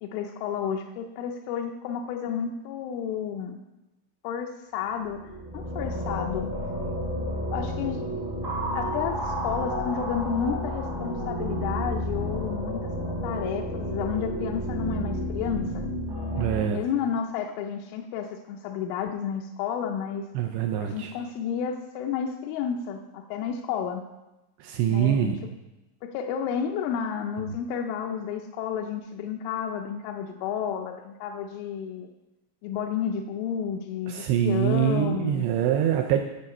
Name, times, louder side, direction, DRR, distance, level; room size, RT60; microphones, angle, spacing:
voice 1, 0.0-3.6 4.2-6.5 7.5-8.0 8.7-12.9 13.2-15.9 16.7-20.3 20.8-24.0 24.9-25.3 26.0-32.1 32.6-35.5, left 7 dB, 85° left, 2 dB, 3.2 m, -31 dB
sound 1, 5.0-16.6, equal, 15° right, 0.8 m, -31 dB
voice 2, 16.4-16.8 20.3-21.1 24.6-25.4 34.1-36.2, right 10 dB, 80° right, 4 dB, 2.4 m, -24 dB
11.5 x 7.3 x 5.3 m, 0.98 s
omnidirectional pair, 5.5 m